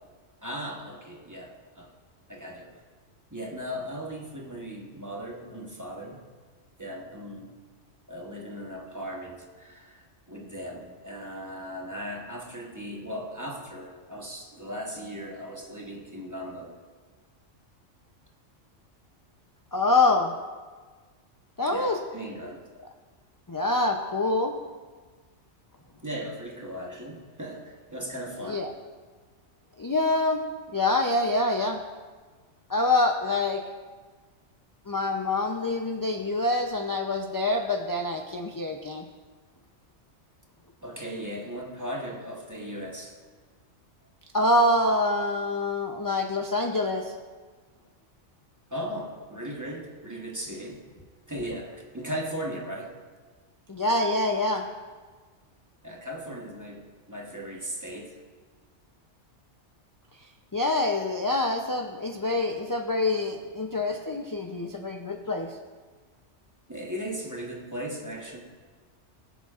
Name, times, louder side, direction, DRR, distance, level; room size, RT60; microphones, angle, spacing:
voice 1, 0.4-1.9 2.3-2.8 3.3-6.3 6.8-7.5 8.1-16.7 21.7-22.6 26.0-28.7 40.8-43.2 48.7-50.8 51.3-52.9 55.8-58.1 66.7-68.4, equal, 15° right, 0 dB, 1.0 m, -37 dB
voice 2, 19.7-20.3 21.6-22.0 23.5-24.5 28.4-28.7 29.8-30.4 30.7-31.8 32.7-33.6 34.9-39.0 44.3-47.1 53.7-54.6 60.5-65.5, left 2 dB, 25° left, 2 dB, 0.4 m, -25 dB
20.5 x 7.0 x 2.5 m, 1.4 s
omnidirectional pair, 1.2 m